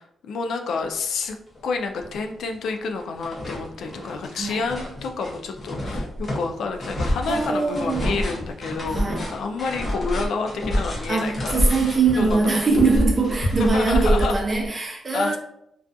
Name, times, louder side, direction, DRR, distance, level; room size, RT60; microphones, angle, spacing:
voice 1, 0.0-1.4 1.6-11.6 12.2-12.6 13.6-14.4 15.1-15.4, left 4 dB, 80° left, 4 dB, 0.3 m, -29 dB
sound 1, 1.6-1.7 2.0-2.7 3.0-14.7, equal, 35° left, 0.8 m, -27 dB
voice 2, 7.3-8.1 8.9-9.2 11.1-15.4, right 4 dB, 30° right, 0 dB, 0.7 m, -22 dB
2.3 x 2.3 x 2.5 m, 0.77 s
cardioid pair, 110°, 0 cm